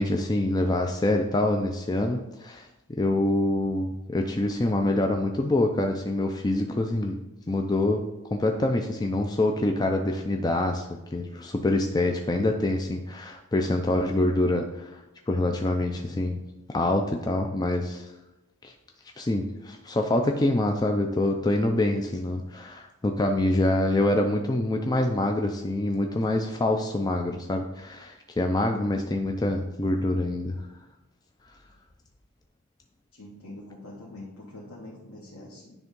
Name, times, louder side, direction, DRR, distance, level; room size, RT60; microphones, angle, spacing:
voice 1, 0.0-7.2 7.5-8.0 8.3-15.0 15.3-18.1 18.6-18.7 19.2-30.7, left 1 dB, 20° left, 3 dB, 0.4 m, -26 dB
voice 2, 33.1-35.7, left 1 dB, 80° left, -5 dB, 1.6 m, -44 dB
9.4 x 3.6 x 5.3 m, 0.94 s
head